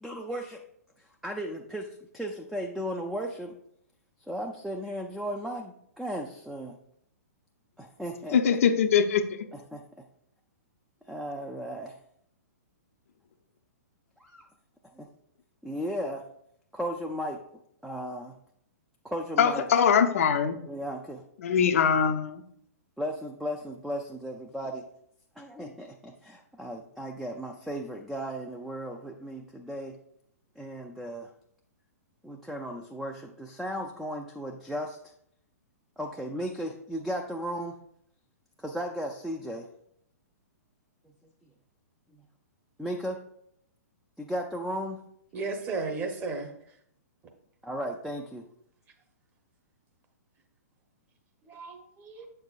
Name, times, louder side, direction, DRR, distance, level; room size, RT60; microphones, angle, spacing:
voice 1, 0.0-0.6 1.0-3.5 4.3-6.8 7.8-8.4 9.5-10.0 11.1-12.0 14.2-14.5 15.0-15.1 15.6-16.2 16.7-17.4 17.8-18.3 19.0-19.6 20.7-21.2 23.0-24.8 25.4-30.0 30.6-31.3 32.2-35.1 36.0-37.8 38.6-39.7 42.1-42.2 42.8-43.2 44.2-45.0 47.6-48.4, equal, ahead, 2 dB, 0.4 m, -35 dB
voice 2, 8.3-9.5 19.4-20.6 21.4-22.4, left 7 dB, 55° left, 7 dB, 0.6 m, -22 dB
voice 3, 45.3-46.8 51.4-52.3, right 3 dB, 20° right, 4 dB, 1.0 m, -35 dB
7.8 x 6.6 x 2.4 m, 0.70 s
figure-of-eight pair, 115°, 9 cm